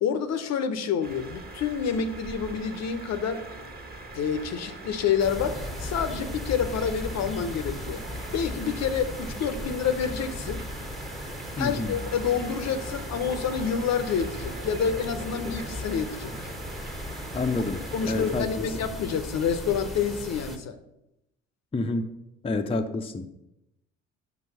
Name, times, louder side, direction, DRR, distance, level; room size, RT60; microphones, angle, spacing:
voice 1, 0.0-3.4 4.1-8.0 8.3-10.7 11.6-16.3 17.9-20.8, left 7 dB, 45° left, 10 dB, 0.8 m, -28 dB
sound 1, 1.0-18.4, right 2 dB, 25° right, 1.5 m, -41 dB
sound 2, 5.2-20.6, left 1 dB, ahead, 1.0 m, -37 dB
voice 2, 11.6-12.0 17.3-18.7 21.7-22.1 22.4-23.3, left 3 dB, 15° left, 5 dB, 0.7 m, -28 dB
6.1 x 5.4 x 6.6 m, 0.88 s
figure-of-eight pair, 50°, 37 cm